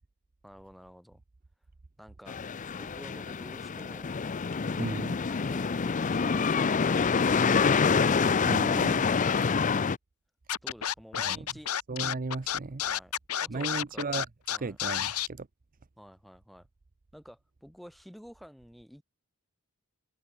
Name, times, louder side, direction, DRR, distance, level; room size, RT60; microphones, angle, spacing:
voice 1, 0.4-1.2 2.0-2.4 2.8-4.1 10.6-11.7 12.8-13.1 13.4-14.1 14.5-14.8 16.0-16.7 17.1-19.0, equal, ahead, 7.3 m, -51 dB
sound 1, 2.3-10.0, left 5 dB, 35° left, 0.5 m, -26 dB
voice 2, 4.8-5.2 8.5-9.0 11.3-11.4 11.9-12.8 13.5-14.3 14.6-15.5, right 3 dB, 40° right, 0.7 m, -35 dB
Scratching (performance technique), 10.5-15.3, left 10 dB, 75° left, 1.0 m, -30 dB
head